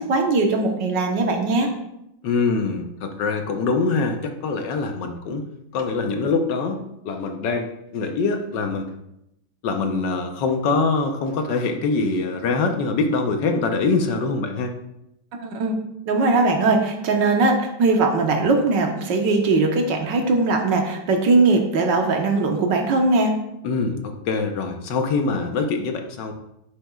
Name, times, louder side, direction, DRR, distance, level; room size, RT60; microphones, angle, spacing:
voice 1, 0.0-1.7 15.4-15.8 16.1-23.4, right 3 dB, 65° right, 3 dB, 1.8 m, -20 dB
voice 2, 2.2-5.4 5.7-6.8 7.0-8.9 9.6-14.7 23.6-26.3, left 4 dB, 65° left, 5 dB, 1.5 m, -24 dB
10.5 x 8.7 x 2.4 m, 0.83 s
omnidirectional pair, 2.2 m